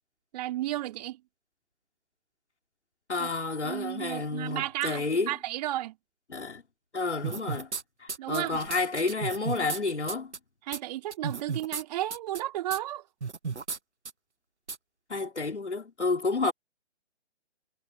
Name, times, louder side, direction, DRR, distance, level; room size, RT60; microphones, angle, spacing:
voice 1, 0.3-1.2 3.2-3.3 3.6-6.0 8.2-8.6 10.6-13.0, right 14 dB, 35° right, 4.0 m, -33 dB
voice 2, 3.1-5.3 6.3-6.6 6.9-7.7 8.0-10.3 15.1-16.5, left 3 dB, 85° left, 4.1 m, -30 dB
sound 1, 7.2-7.8 8.1-9.8 10.1-10.4 10.7-10.8 11.1-11.8 12.1-12.4 12.7-12.8 13.2-13.8 14.1-14.2 14.7-14.8, right 5 dB, 85° right, 1.4 m, -34 dB
figure-of-eight pair, 135°, 34 cm